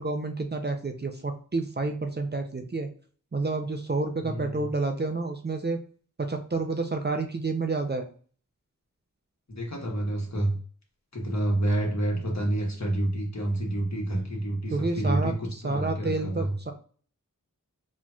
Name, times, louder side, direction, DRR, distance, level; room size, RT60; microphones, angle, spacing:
voice 1, 0.0-2.9 3.3-5.8 6.2-8.1 14.7-15.3 15.6-16.7, right 3 dB, 30° right, 5 dB, 0.6 m, -29 dB
voice 2, 4.2-4.7 9.5-10.5 11.1-16.5, right 1 dB, 55° left, -1 dB, 1.3 m, -28 dB
4.2 x 2.9 x 2.4 m, 0.44 s
wide cardioid pair, 50°, 33 cm